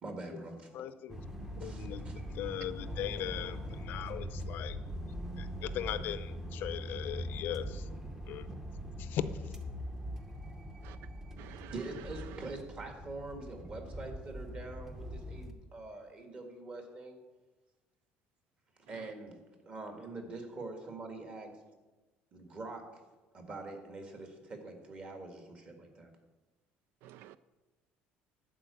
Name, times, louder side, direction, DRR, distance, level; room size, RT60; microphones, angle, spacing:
voice 1, 0.0-0.8 1.6-2.3 11.7-17.2 18.9-19.4 19.7-21.5 22.3-23.0 23.3-26.1, right 2 dB, 30° right, 1.8 m, -44 dB
voice 2, 0.7-1.2 1.6-4.8 5.4-7.9 8.3-8.5 9.0-9.5, left 11 dB, 55° left, 0.5 m, -39 dB
sound 1, 1.1-15.5, equal, 10° right, 0.9 m, -42 dB
voice 3, 11.4-11.7 27.0-27.4, right 13 dB, 70° right, 0.3 m, -50 dB
12.0 x 4.6 x 8.3 m
cardioid pair, 165°, 4 cm